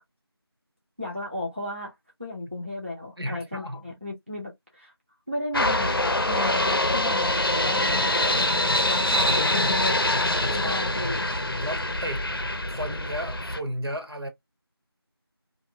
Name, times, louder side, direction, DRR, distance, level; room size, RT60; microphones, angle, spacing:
voice 1, 1.0-1.9 2.2-4.9 5.3-8.3 8.8-10.0 10.5-11.2, left 1 dB, 30° right, 0.6 m, -34 dB
voice 2, 3.2-4.0 7.9-8.1 10.4-10.9 11.6-12.3 12.7-14.3, equal, 65° right, 1.0 m, -34 dB
sound 1, 5.5-13.6, left 1 dB, 60° left, 0.6 m, -24 dB
2.6 x 2.1 x 2.5 m
figure-of-eight pair, 180°, 14 cm